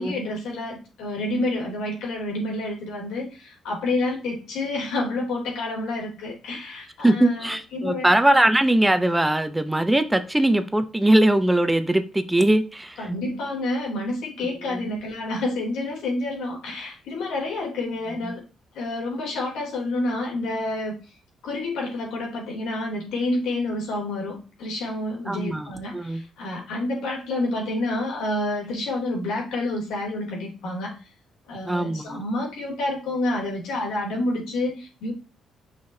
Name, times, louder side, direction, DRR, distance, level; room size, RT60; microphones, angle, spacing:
voice 1, 0.0-8.0 8.3-8.4 13.0-18.4 18.7-21.0 21.4-31.1 31.5-35.1, left 2 dB, 85° left, -1 dB, 3.2 m, -29 dB
voice 2, 7.0-13.0 18.3-18.4 25.3-26.2 31.7-32.2, right 1 dB, 10° right, 10 dB, 0.7 m, -21 dB
6.1 x 5.8 x 2.8 m, 0.34 s
cardioid pair, 90°, 0 cm